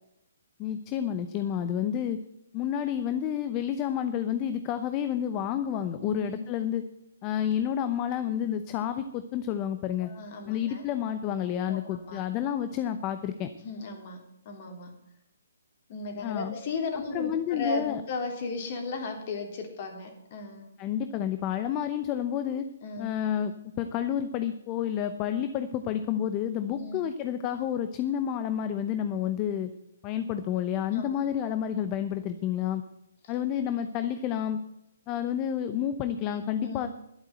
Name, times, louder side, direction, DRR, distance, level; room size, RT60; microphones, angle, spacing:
voice 1, 0.6-2.2 2.5-6.8 7.2-10.1 10.5-13.5 16.2-16.5 17.1-18.0 20.8-22.7 23.0-29.7 30.0-32.8 33.3-34.6 35.1-36.9, left 9 dB, 25° left, 10 dB, 0.8 m, -30 dB
voice 2, 6.0-6.4 10.0-10.9 11.7-12.2 13.6-14.2 14.5-14.9 15.9-20.6 22.8-23.1 26.8-27.0 30.9-31.2 36.6-36.9, left 3 dB, 45° left, 4 dB, 3.5 m, -36 dB
11.5 x 8.6 x 7.7 m, 0.83 s
hypercardioid pair, 140°, 0 cm